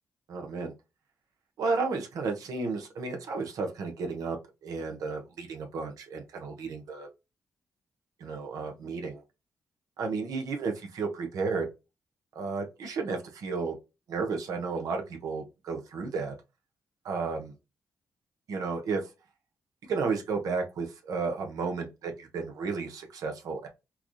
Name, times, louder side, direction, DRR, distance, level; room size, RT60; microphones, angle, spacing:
voice 1, 0.3-0.7 1.6-4.4 4.6-7.1 8.2-9.2 10.0-11.7 12.3-13.8 14.1-16.3 17.0-17.5 18.5-19.0 19.9-23.7, right 4 dB, 80° right, 0.9 m, -32 dB
4.6 x 2.3 x 2.6 m
cardioid pair, 60°, 6 cm